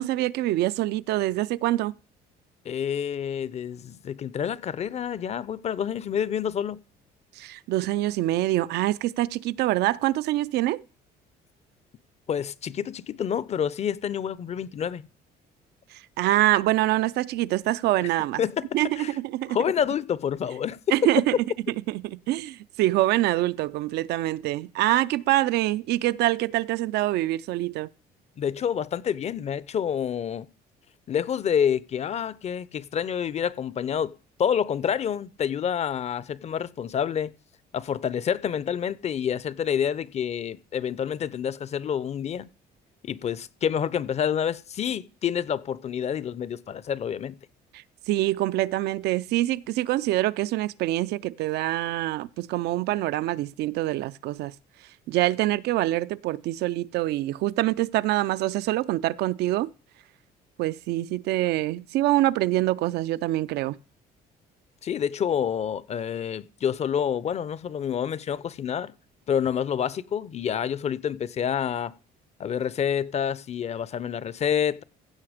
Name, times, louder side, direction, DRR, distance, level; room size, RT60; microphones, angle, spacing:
voice 1, 0.0-1.9 7.4-10.8 16.2-18.4 18.7-19.6 20.9-21.4 21.9-22.0 22.3-27.9 48.1-54.5 55.1-59.7 60.6-63.8, right 16 dB, 75° right, 0.4 m, -25 dB
voice 2, 2.7-6.8 12.3-15.1 18.4-18.6 19.0-19.1 19.5-20.8 28.4-30.5 31.1-34.1 34.4-37.3 37.7-42.5 43.0-47.4 64.8-68.9 69.3-71.9 72.4-74.8, left 8 dB, 40° left, 0.6 m, -28 dB
15.5 x 5.8 x 5.0 m
cardioid pair, 110°, 17 cm